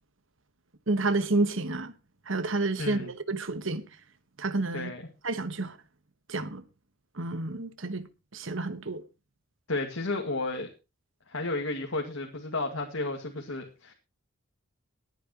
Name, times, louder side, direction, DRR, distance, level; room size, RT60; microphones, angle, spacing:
voice 1, 0.9-1.9 2.3-3.8 4.4-4.9 5.2-5.7 6.3-6.6 7.2-8.1 8.3-9.0, right 2 dB, 70° right, 1.4 m, -29 dB
voice 2, 2.8-3.1 4.7-5.1 9.7-10.7 11.3-13.9, left 2 dB, 90° left, 2.2 m, -32 dB
22.0 x 9.4 x 3.0 m
head